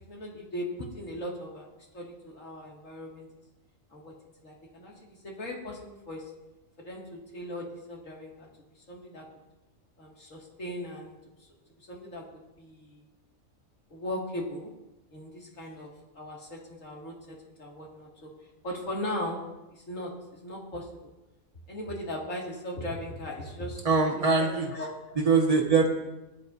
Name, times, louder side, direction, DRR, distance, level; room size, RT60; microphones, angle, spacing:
voice 1, 0.1-1.7 1.9-3.3 3.9-4.1 4.4-6.2 6.8-8.5 8.9-9.2 10.0-11.2 11.9-12.2 12.6-13.0 13.9-14.7 15.1-15.9 16.1-18.3 18.6-19.4 19.7-20.9 21.7-23.9 24.4-24.9, left 1 dB, 65° left, -3 dB, 2.8 m, -38 dB
voice 2, 23.9-24.7 25.2-25.9, right 4 dB, 25° right, -1 dB, 1.8 m, -22 dB
19.0 x 10.5 x 2.7 m, 1.0 s
omnidirectional pair, 1.4 m